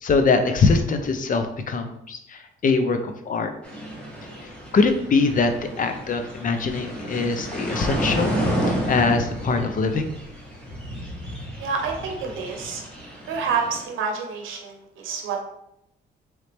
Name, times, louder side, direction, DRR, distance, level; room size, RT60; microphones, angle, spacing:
voice 1, 0.0-3.5 4.7-8.3 8.7-10.1, left 4 dB, 40° left, 7 dB, 0.6 m, -22 dB
sound 1, 3.6-13.8, equal, 5° left, 1.4 m, -31 dB
voice 2, 11.6-12.8 13.3-15.5, right 5 dB, 80° right, 2 dB, 0.7 m, -28 dB
3.9 x 3.2 x 3.3 m, 0.78 s
cardioid pair, 90°, 20 cm